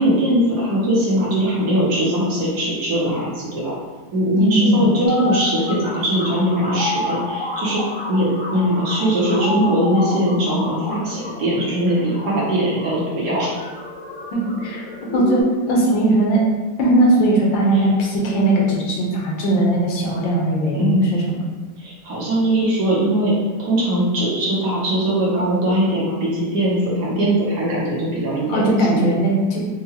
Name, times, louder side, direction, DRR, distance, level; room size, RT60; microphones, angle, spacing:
voice 1, 0.0-3.8 4.1-7.8 8.1-13.5 17.7-17.9 20.7-21.1 21.8-23.3 23.6-28.6 28.9-29.1, right 1 dB, 65° right, -6 dB, 1.3 m, -20 dB
voice 2, 4.4-4.9 14.3-14.8 15.1-15.4 15.7-16.4 16.8-21.2 28.5-29.6, right 1 dB, 80° left, -3 dB, 1.5 m, -18 dB
sound 1, 5.0-15.4, left 2 dB, 50° left, 0.9 m, -30 dB
4.6 x 2.2 x 2.8 m, 1.3 s
omnidirectional pair, 2.1 m